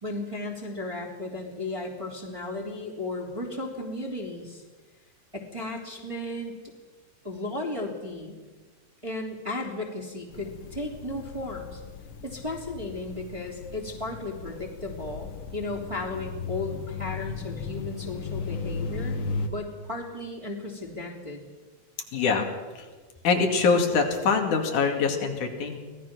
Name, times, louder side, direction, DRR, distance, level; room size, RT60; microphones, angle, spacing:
voice 1, 0.0-4.6 5.3-6.6 7.2-8.4 9.0-11.8 12.2-19.2 19.5-21.5, left 2 dB, 10° right, -2 dB, 2.8 m, -35 dB
sound 1, 10.3-19.5, left 4 dB, 55° left, 1.7 m, -36 dB
voice 2, 22.1-22.5 23.2-25.8, left 5 dB, 85° left, 3 dB, 3.7 m, -23 dB
24.0 x 17.5 x 6.1 m, 1.4 s
omnidirectional pair, 3.4 m